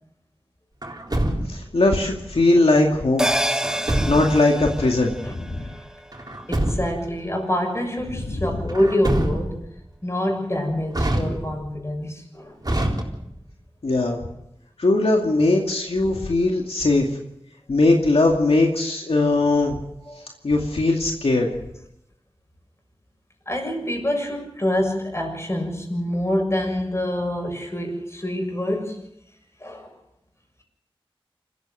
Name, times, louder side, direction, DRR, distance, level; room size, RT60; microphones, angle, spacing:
Truck, 0.8-1.8 3.6-4.5 6.1-7.1 8.7-9.7 10.9-11.7 12.6-13.5, right 1 dB, 40° right, 4.0 m, -25 dB
voice 1, 1.5-3.3 4.1-5.7 8.3-8.5 13.8-14.2 14.8-17.1 17.7-19.8 20.4-21.5, left 2 dB, 85° left, 1 dB, 2.4 m, -20 dB
sound 1, 3.2-7.9 8.2-8.3, right 1 dB, 5° right, 1.2 m, -29 dB
voice 2, 6.5-9.7 10.0-12.6 20.0-20.3 23.5-29.0 29.6-29.9, left 1 dB, 30° left, 2 dB, 6.9 m, -26 dB
27.0 x 15.0 x 6.5 m, 0.80 s
wide cardioid pair, 45°, 10 cm